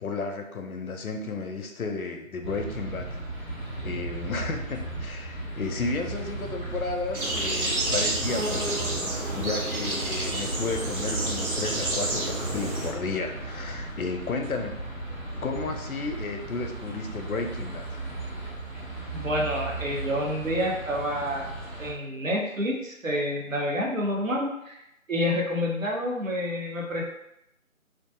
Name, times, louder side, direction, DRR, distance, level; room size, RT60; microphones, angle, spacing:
voice 1, 0.0-3.1 3.8-8.8 9.3-14.8 15.4-18.0, left 4 dB, 85° left, 5 dB, 0.6 m, -33 dB
sound 1, 2.4-21.9, right 2 dB, 35° right, 0.8 m, -36 dB
sound 2, 7.1-12.9, right 2 dB, 90° right, 1.1 m, -29 dB
voice 2, 19.1-21.5 21.8-24.8 25.1-27.0, equal, 65° right, -2 dB, 0.8 m, -28 dB
2.4 x 2.2 x 2.6 m, 0.83 s
figure-of-eight pair, 165°, 42 cm